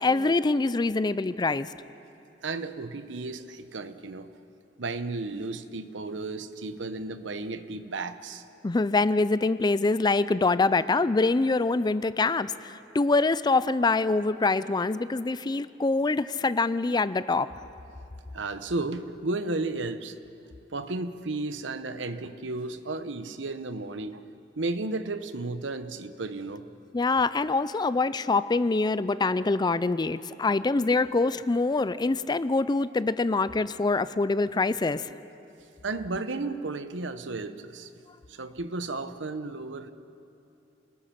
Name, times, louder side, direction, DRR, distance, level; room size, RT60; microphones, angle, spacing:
voice 1, 0.0-1.7 8.6-17.5 26.9-35.1, left 3 dB, 20° left, 15 dB, 0.4 m, -25 dB
voice 2, 2.4-4.3 4.8-8.4 18.3-20.1 20.7-24.2 24.6-26.6 35.8-37.9 38.3-39.9, right 3 dB, 70° right, 11 dB, 0.9 m, -33 dB
26.5 x 19.5 x 5.9 m, 2.7 s
head